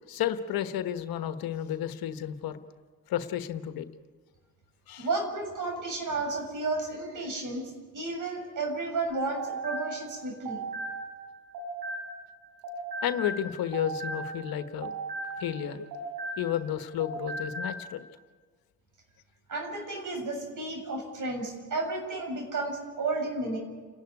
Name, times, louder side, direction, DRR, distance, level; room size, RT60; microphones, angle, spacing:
voice 1, 0.1-2.6 3.1-3.9 4.9-5.1 13.0-14.9 15.4-15.8 16.4-18.1, left 10 dB, 80° left, 9 dB, 1.3 m, -32 dB
voice 2, 5.0-10.7 19.5-23.6, right 3 dB, 60° right, 3 dB, 7.0 m, -32 dB
sound 1, 9.1-12.4 12.6-16.7 17.0-17.8, right 2 dB, 90° right, 6.7 m, -37 dB
30.0 x 11.5 x 9.7 m, 1.5 s
cardioid pair, 85°, 36 cm